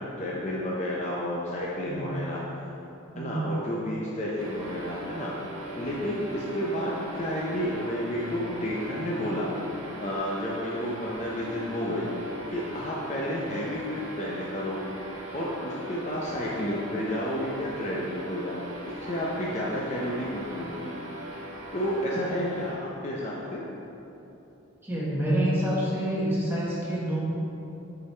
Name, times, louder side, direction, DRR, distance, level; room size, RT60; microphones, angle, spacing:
voice 1, 0.0-2.4 3.2-5.3 5.8-9.5 10.0-14.8 15.3-20.9 21.7-23.6, equal, 35° left, -5 dB, 0.6 m, -31 dB
voice 2, 3.1-3.4 24.8-27.2, right 1 dB, 10° right, -7 dB, 1.3 m, -27 dB
sound 1, 4.4-22.7, right 1 dB, 75° right, 1.4 m, -39 dB
8.3 x 4.7 x 3.3 m, 3.0 s
head